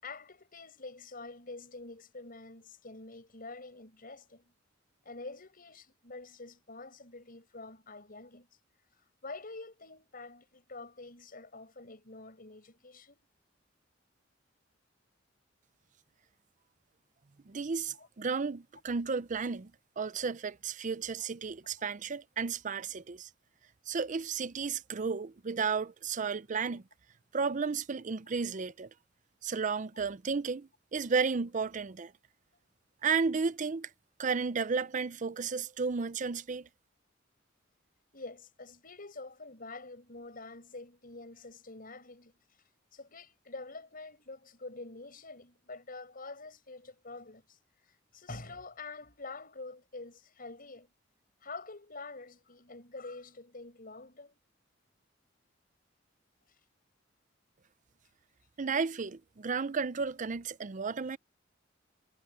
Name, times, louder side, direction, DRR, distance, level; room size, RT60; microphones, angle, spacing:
voice 1, 0.0-4.5 5.0-8.5 8.9-13.2 17.9-18.1 21.2-21.3 36.2-36.4 38.1-50.9 51.4-54.4, left 3 dB, 50° left, 6.4 m, -47 dB
voice 2, 17.5-19.7 20.0-23.3 23.9-26.8 27.3-28.9 29.4-32.1 33.0-33.9 34.2-36.7 58.6-61.2, right 5 dB, 40° right, 0.5 m, -33 dB
head